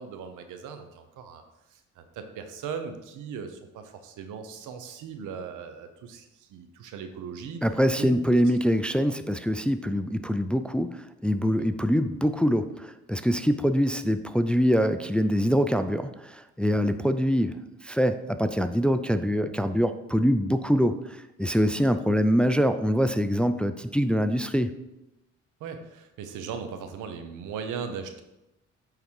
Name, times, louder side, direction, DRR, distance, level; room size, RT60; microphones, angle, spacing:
voice 1, 0.0-1.4 1.7-7.6 8.0-8.2 8.4-8.6 11.5-11.7 16.6-16.8 25.6-28.2, right 6 dB, 90° right, 7 dB, 1.0 m, -38 dB
voice 2, 7.6-17.6 17.8-21.0 21.4-24.8, equal, 5° left, 9 dB, 0.4 m, -24 dB
8.8 x 3.9 x 4.7 m, 0.93 s
cardioid pair, 90°, 30 cm